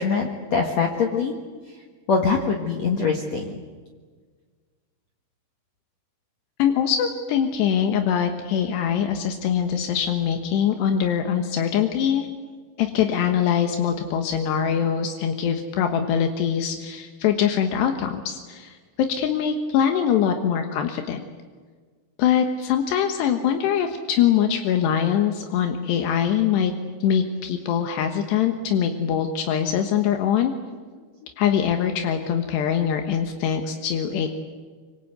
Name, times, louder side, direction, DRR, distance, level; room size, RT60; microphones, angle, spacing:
voice 1, 0.0-1.3 2.1-3.5, left 5 dB, 55° left, 2 dB, 2.3 m, -23 dB
voice 2, 6.6-12.3 12.8-21.3 22.2-26.7 27.0-30.5 31.4-34.3, left 8 dB, 80° left, 6 dB, 3.5 m, -23 dB
25.5 x 25.0 x 8.1 m, 1.5 s
omnidirectional pair, 4.8 m